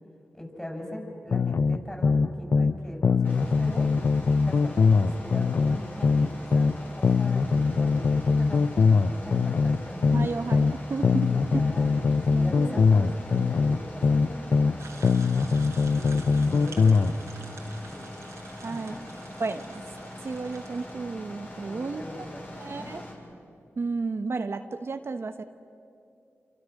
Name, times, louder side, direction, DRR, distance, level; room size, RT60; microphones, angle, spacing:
voice 1, 0.3-3.9 4.3-10.4 11.2-15.3 16.1-17.4 17.9-18.1 18.7-19.0 21.6-23.0, left 1 dB, 15° left, 0 dB, 7.8 m, -41 dB
sound 1, 1.3-2.8 3.0-6.8 7.0-10.8 11.0-14.8 15.0-17.1, left 4 dB, 60° left, 0.6 m, -22 dB
sound 2, 3.2-23.1, left 1 dB, 40° left, 6.8 m, -43 dB
voice 2, 10.1-11.3 11.5-11.6 12.3-12.9 18.6-19.0 19.4-19.8 20.2-22.3 22.5-23.0 23.8-25.4, right 4 dB, 60° right, 8 dB, 1.0 m, -32 dB
sound 3, 14.8-20.9, right 4 dB, 85° right, 2.8 m, -49 dB
29.0 x 25.5 x 6.6 m, 2.6 s
cardioid pair, 55°, 5 cm